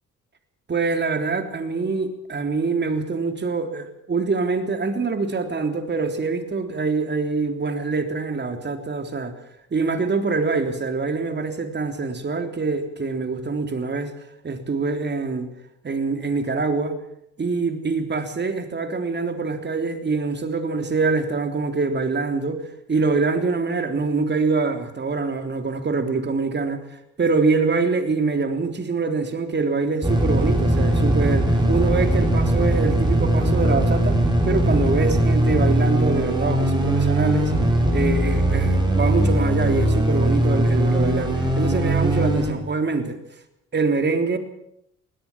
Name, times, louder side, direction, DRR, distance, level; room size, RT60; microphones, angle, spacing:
voice 1, 0.7-9.3 9.7-14.1 14.4-15.5 15.8-17.0 17.4-34.2 34.5-37.5 37.9-43.2 43.7-44.4, right 4 dB, 35° right, 6 dB, 3.5 m, -24 dB
sound 1, 30.0-42.5, right 1 dB, 15° right, 7.0 m, -20 dB
22.5 x 17.5 x 7.3 m, 0.75 s
cardioid pair, 90°, 30 cm